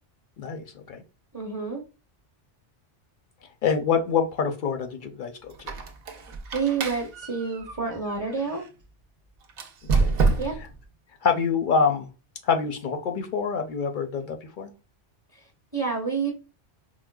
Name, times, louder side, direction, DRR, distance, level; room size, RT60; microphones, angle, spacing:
voice 1, 0.4-1.0 3.6-5.8 9.9-10.2 10.6-10.7 11.2-12.1 12.4-14.7, left 6 dB, 60° left, 6 dB, 0.5 m, -26 dB
voice 2, 1.3-1.8 6.5-8.6 10.4-10.5 15.7-16.3, right 5 dB, 20° right, -1 dB, 0.6 m, -28 dB
Squeak, 5.5-8.7 9.5-10.8, right 4 dB, 60° right, 0.7 m, -28 dB
4.6 x 2.0 x 2.2 m, 0.30 s
omnidirectional pair, 1.2 m